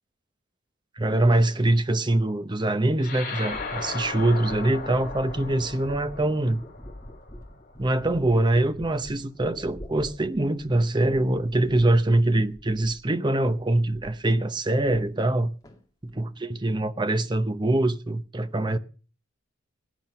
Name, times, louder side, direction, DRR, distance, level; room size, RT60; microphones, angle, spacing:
voice 1, 1.0-6.6 7.8-15.5 16.0-18.8, right 1 dB, 20° right, 0.7 m, -24 dB
sound 1, 3.0-7.7, left 4 dB, 40° left, 5.1 m, -37 dB
sound 2, 3.4-13.1 13.4-14.2 14.5-15.4 15.6-16.2, equal, 15° left, 2.2 m, -45 dB
16.5 x 9.3 x 5.5 m
head